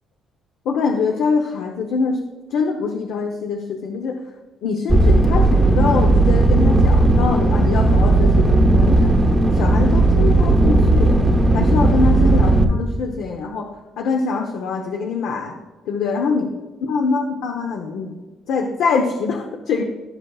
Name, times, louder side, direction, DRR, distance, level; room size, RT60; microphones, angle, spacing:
voice 1, 0.6-2.2 2.5-4.2 4.6-9.1 9.5-11.2 11.5-13.7 14.0-15.5 15.9-16.5 16.8-18.2 18.5-19.8, left 5 dB, 70° left, 3 dB, 0.8 m, -23 dB
sound 1, 4.9-12.6, right 2 dB, 10° right, 0.9 m, -15 dB
16.5 x 6.7 x 2.4 m, 1.3 s
cardioid pair, 160°, 0 cm